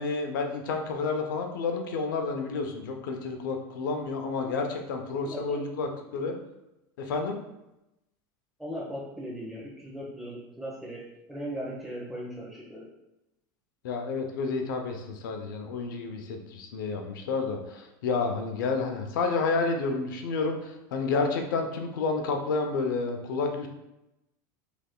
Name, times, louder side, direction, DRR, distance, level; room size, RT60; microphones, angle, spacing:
voice 1, 0.0-6.4 7.0-7.4 13.8-23.7, left 4 dB, 85° left, 4 dB, 0.5 m, -30 dB
voice 2, 5.2-5.6 6.1-6.2 8.6-11.0 11.3-12.9, equal, ahead, -6 dB, 1.2 m, -38 dB
3.4 x 3.2 x 2.2 m, 0.92 s
supercardioid pair, 115°, 10 cm